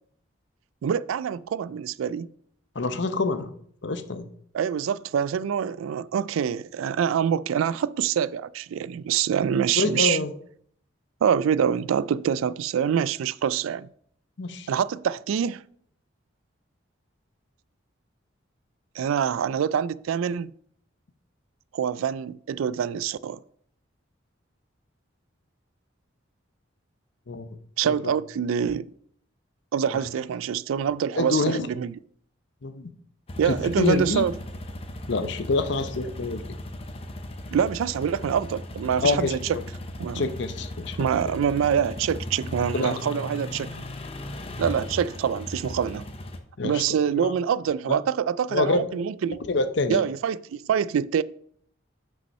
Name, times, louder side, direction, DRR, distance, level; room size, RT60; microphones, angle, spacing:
voice 1, 0.8-2.3 4.5-10.2 11.2-13.9 14.7-15.6 19.0-20.5 21.7-23.4 27.8-28.9 29.7-31.9 33.4-34.3 37.5-39.4 40.0-40.2 41.0-43.7 44.6-46.0 46.6-49.4 49.9-51.2, right 8 dB, 90° right, 0.3 m, -25 dB
voice 2, 2.7-3.5 3.8-4.3 9.8-10.3 14.4-14.7 27.3-27.5 27.8-28.1 29.9-30.0 31.2-31.7 32.6-32.9 33.5-34.3 35.1-36.4 39.0-39.6 40.1-41.0 41.2-41.3 42.7-43.2 46.6-47.3 47.9-48.0 48.5-48.9 49.5-50.0, left 3 dB, 60° left, 0.7 m, -26 dB
sound 1, 33.3-46.4, left 1 dB, 30° left, 0.7 m, -37 dB
6.1 x 5.5 x 5.4 m
head